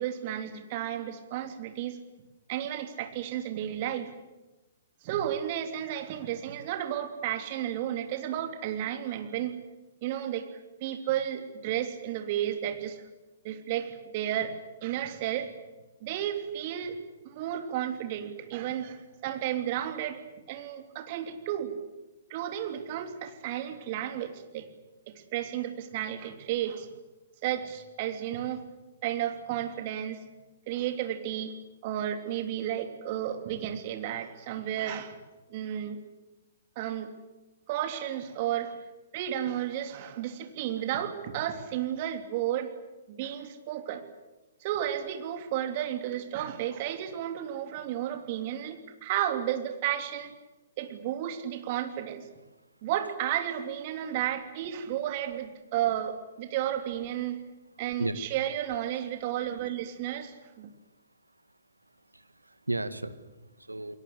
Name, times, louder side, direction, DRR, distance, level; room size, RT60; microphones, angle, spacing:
voice 1, 0.0-2.0 2.5-4.1 5.0-9.5 10.0-10.5 10.8-13.0 13.4-14.5 14.8-15.5 16.0-17.0 17.2-20.2 20.5-21.7 22.3-24.7 25.1-26.9 27.4-28.6 29.0-30.2 30.7-31.5 31.8-35.2 35.5-36.0 36.7-37.1 37.7-38.8 39.1-42.7 43.1-44.0 44.6-50.3 50.8-52.2 52.8-57.4 57.8-60.7, right 11 dB, 40° right, 7 dB, 3.2 m, -32 dB
voice 2, 62.1-64.0, right 2 dB, 85° right, 11 dB, 1.9 m, -34 dB
28.5 x 22.0 x 8.1 m, 1.1 s
figure-of-eight pair, 120°, 0 cm